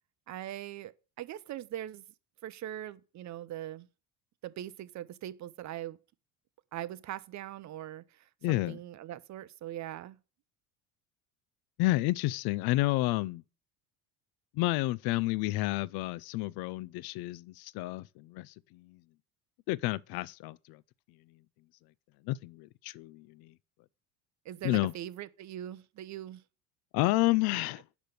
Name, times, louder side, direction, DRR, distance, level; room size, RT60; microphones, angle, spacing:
voice 1, 0.3-2.0 2.4-3.9 4.4-6.0 6.7-8.0 8.5-10.2 24.5-26.4, right 12 dB, 40° right, 0.6 m, -41 dB
voice 2, 8.4-8.8 11.8-13.4 14.5-19.0 19.7-20.8 22.2-23.5 24.6-24.9 26.9-27.8, left 19 dB, 55° left, 0.5 m, -30 dB
6.0 x 5.1 x 6.7 m
supercardioid pair, 85°, 46 cm